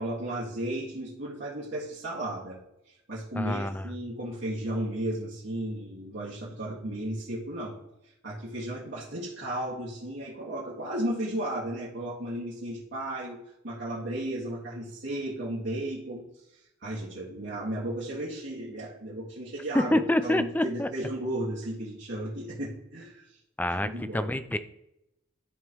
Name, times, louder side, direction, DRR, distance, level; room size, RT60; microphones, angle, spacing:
voice 1, 0.0-2.6 2.9-7.8 8.0-13.4 13.6-16.3 16.5-23.4 23.8-24.4, right 1 dB, 70° right, -7 dB, 2.0 m, -34 dB
voice 2, 3.3-3.9 19.7-20.9 23.6-24.6, left 1 dB, 10° left, 11 dB, 0.4 m, -27 dB
13.0 x 5.2 x 3.0 m, 0.86 s
head